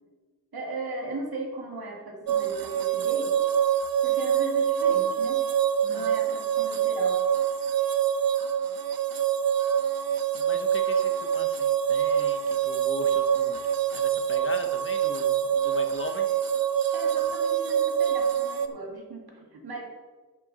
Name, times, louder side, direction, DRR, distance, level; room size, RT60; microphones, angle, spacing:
voice 1, 0.5-3.4 4.0-5.4 5.9-7.3 16.9-19.8, right 2 dB, 90° right, 0 dB, 2.3 m, -37 dB
sound 1, 2.3-18.7, right 9 dB, 70° right, 0.7 m, -25 dB
voice 2, 5.8-6.1 10.3-16.3, left 2 dB, 35° left, 6 dB, 1.0 m, -40 dB
11.5 x 7.5 x 4.1 m, 1.3 s
wide cardioid pair, 135°, 36 cm